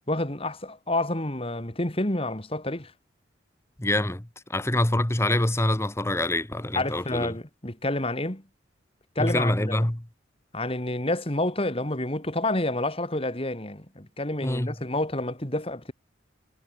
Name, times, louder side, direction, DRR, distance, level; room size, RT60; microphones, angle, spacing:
voice 1, 0.1-2.9 6.7-8.4 9.2-9.8 10.5-15.9, left 1 dB, 30° left, 2.7 m, -29 dB
voice 2, 3.8-7.3 9.2-10.0 14.4-14.7, left 1 dB, 15° left, 1.0 m, -25 dB
head